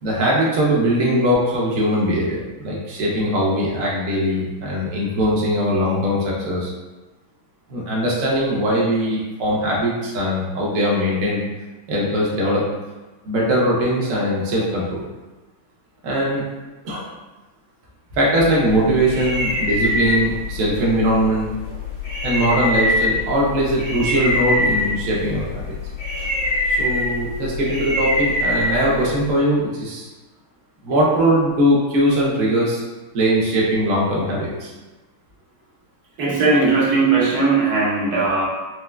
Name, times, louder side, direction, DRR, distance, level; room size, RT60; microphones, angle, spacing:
voice 1, 0.0-6.7 7.7-11.4 11.9-12.6 13.2-15.0 16.0-16.4 16.8-17.1 18.2-21.5 22.2-25.7 26.7-30.1 30.8-32.8 33.1-34.7, equal, 80° right, -4 dB, 0.7 m, -20 dB
sound 1, 18.4-26.4, left 16 dB, 90° left, 0.8 m, -38 dB
sound 2, 18.7-29.3, left 1 dB, 65° left, 1.6 m, -24 dB
voice 2, 36.2-38.5, right 3 dB, 65° right, -5 dB, 1.0 m, -18 dB
4.5 x 2.2 x 2.2 m, 1.2 s
omnidirectional pair, 2.2 m